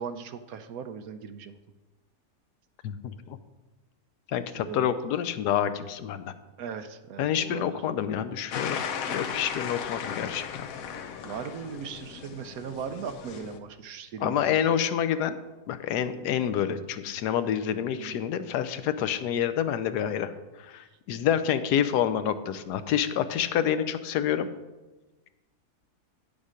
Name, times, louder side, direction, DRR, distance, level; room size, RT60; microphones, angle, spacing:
voice 1, 0.0-1.6 4.5-4.9 6.6-7.8 9.1-9.2 11.2-14.4 17.9-18.2, right 6 dB, 70° right, 10 dB, 1.0 m, -38 dB
voice 2, 2.8-3.4 4.3-6.3 7.2-8.8 9.1-10.7 14.2-15.4 15.7-24.5, left 9 dB, 90° left, 12 dB, 1.2 m, -28 dB
sound 1, 8.5-13.6, left 7 dB, 65° left, 1.1 m, -36 dB
9.6 x 7.4 x 5.0 m, 1.1 s
omnidirectional pair, 1.7 m